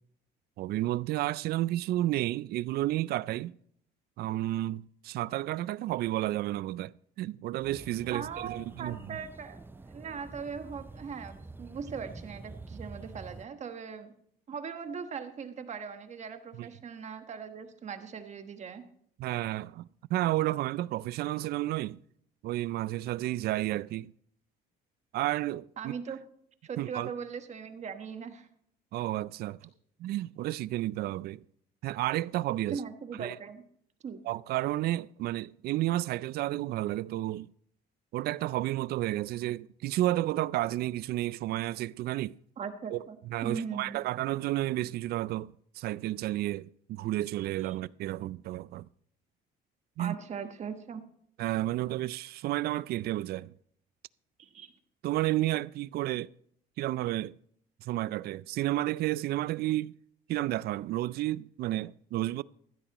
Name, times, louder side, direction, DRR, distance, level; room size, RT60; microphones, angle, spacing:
voice 1, 0.6-3.5 4.2-6.9 7.2-9.2 16.6-16.7 19.2-19.8 20.1-22.0 22.4-24.1 25.1-25.9 26.8-27.1 28.9-29.6 30.0-31.4 31.8-32.8 33.2-33.4 34.3-37.5 38.1-42.4 42.9-43.0 43.3-48.8 50.0-50.2 51.4-53.5 55.0-56.3 56.8-57.3 57.8-59.9 60.3-62.4, right 15 dB, 65° right, 0.4 m, -31 dB
sound 1, 7.6-13.4, right 3 dB, 10° right, 0.5 m, -47 dB
voice 2, 8.1-14.1 14.5-18.8 25.8-26.2 26.6-28.5 32.7-33.6 34.0-34.2 42.6-44.0 47.6-47.8 50.0-51.0 54.4-54.7, right 6 dB, 45° right, 1.3 m, -40 dB
15.0 x 13.0 x 3.0 m
cardioid pair, 110°, 17 cm